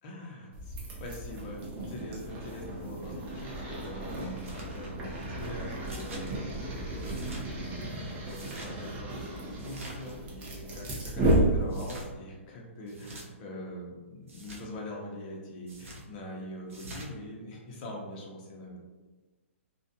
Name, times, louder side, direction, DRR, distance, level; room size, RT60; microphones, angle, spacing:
voice 1, 0.0-18.8, left 1 dB, 35° left, -2 dB, 0.7 m, -43 dB
sound 1, 0.5-12.1, right 1 dB, 20° right, 0.6 m, -33 dB
sound 2, 4.4-4.7 5.8-6.3 7.0-7.5 8.2-8.7 9.6-10.1 11.7-12.1 12.9-13.3 14.3-14.6 15.7-16.0 16.7-17.1, right 1 dB, 85° right, 0.7 m, -45 dB
2.4 x 2.1 x 2.7 m, 1.2 s
hypercardioid pair, 145°, 7 cm